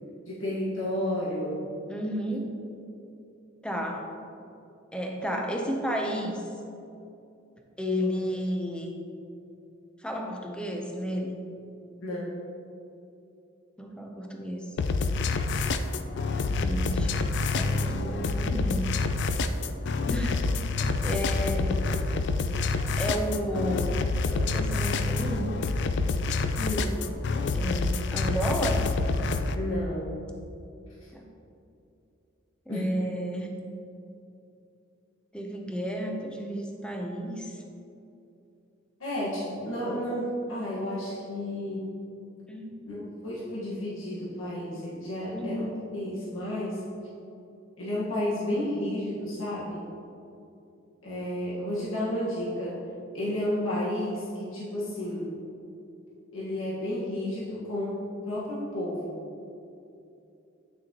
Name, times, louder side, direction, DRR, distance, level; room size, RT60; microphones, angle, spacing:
voice 1, 0.3-1.6 12.0-12.3 26.6-27.0 29.5-30.1 32.7-32.8 39.0-41.9 42.8-46.8 47.8-49.8 51.0-52.8 53.1-55.3 56.3-59.1, left 1 dB, 90° left, -7 dB, 1.6 m, -32 dB
voice 2, 1.9-2.5 3.6-4.1 4.9-6.4 7.8-9.0 10.0-11.4 13.8-14.7 16.5-18.9 20.1-21.8 23.0-25.5 26.3-26.4 27.5-28.9 31.1-31.2 32.7-33.6 35.3-37.6 42.5-42.8 45.3-45.7, equal, 5° left, 1 dB, 0.7 m, -32 dB
sound 1, 14.8-29.5, left 3 dB, 60° left, 0.4 m, -27 dB
9.3 x 6.2 x 3.0 m, 2.7 s
head